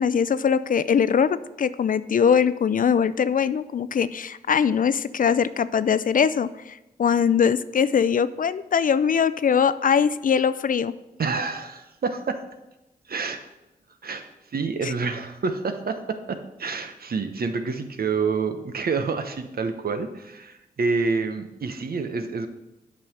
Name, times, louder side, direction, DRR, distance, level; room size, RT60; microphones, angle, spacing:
voice 1, 0.0-10.9 14.8-14.9, left 7 dB, 55° left, 15 dB, 0.4 m, -22 dB
voice 2, 11.2-12.4 13.1-13.5 14.0-22.5, right 4 dB, 65° right, 8 dB, 1.0 m, -28 dB
8.5 x 5.5 x 6.3 m, 0.97 s
cardioid pair, 45°, 17 cm